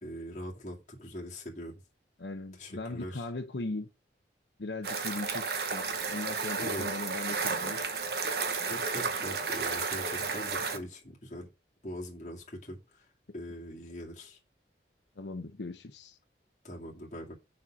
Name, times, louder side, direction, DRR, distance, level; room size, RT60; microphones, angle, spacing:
voice 1, 0.0-1.7 2.6-3.2 6.6-7.1 8.7-11.5 11.8-13.0 13.3-14.4 16.6-17.3, equal, 40° left, 2.3 m, -42 dB
voice 2, 2.2-3.9 4.6-7.9 15.2-16.2, left 2 dB, 80° left, 0.8 m, -39 dB
sound 1, 4.8-10.8, right 4 dB, 60° right, 1.1 m, -32 dB
6.6 x 4.3 x 6.0 m
head